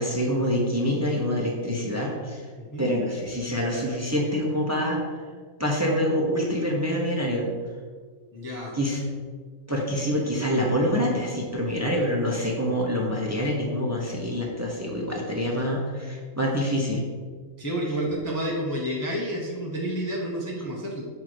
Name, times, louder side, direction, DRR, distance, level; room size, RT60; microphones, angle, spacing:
voice 1, 0.0-2.4 2.8-5.0 5.6-7.5 8.7-9.0 9.7-17.0, equal, 15° right, -2 dB, 0.9 m, -26 dB
voice 2, 8.3-8.8 17.6-21.0, equal, 20° left, -3 dB, 0.7 m, -30 dB
7.6 x 2.9 x 6.1 m, 1.5 s
omnidirectional pair, 1.4 m